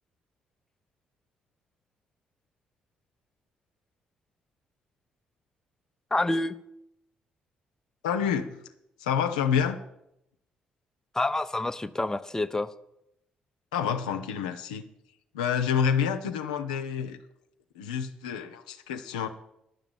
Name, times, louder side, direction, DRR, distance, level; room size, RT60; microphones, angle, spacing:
voice 1, 6.1-6.5 11.1-12.7, left 2 dB, 15° left, 11 dB, 0.7 m, -27 dB
voice 2, 8.0-8.6 9.0-9.8 13.7-14.9 15.3-17.2 17.7-19.3, left 7 dB, 85° left, 6 dB, 0.7 m, -28 dB
10.5 x 6.0 x 8.9 m, 0.81 s
hypercardioid pair, 45°, 4 cm